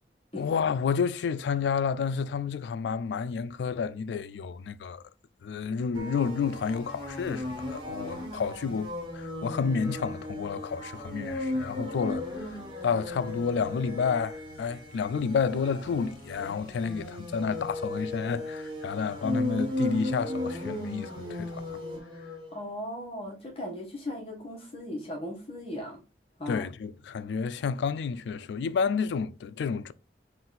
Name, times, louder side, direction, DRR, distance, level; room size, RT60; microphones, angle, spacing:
voice 1, 0.4-5.0 5.4-21.8 26.5-29.9, left 6 dB, 80° left, 0.3 m, -30 dB
sound 1, 5.9-22.5, left 1 dB, 25° right, 1.3 m, -36 dB
voice 2, 22.5-26.0 26.4-26.7, left 1 dB, 35° left, 1.2 m, -37 dB
3.9 x 2.5 x 3.9 m
head